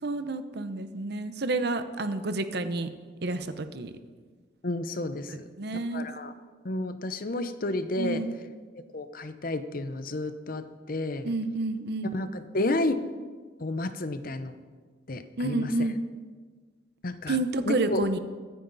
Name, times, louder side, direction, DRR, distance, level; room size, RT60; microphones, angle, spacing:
voice 1, 0.0-2.9 3.2-3.9 5.3-6.1 8.0-8.3 11.2-12.3 15.4-16.0 17.3-18.2, right 2 dB, 60° right, 10 dB, 0.9 m, -29 dB
voice 2, 4.6-5.4 5.9-6.3 6.6-8.2 8.9-11.3 12.1-13.0 13.6-14.5 15.1-15.7 17.0-17.4 17.7-18.0, left 2 dB, 50° left, 11 dB, 0.8 m, -31 dB
23.0 x 9.5 x 4.1 m, 1.5 s
head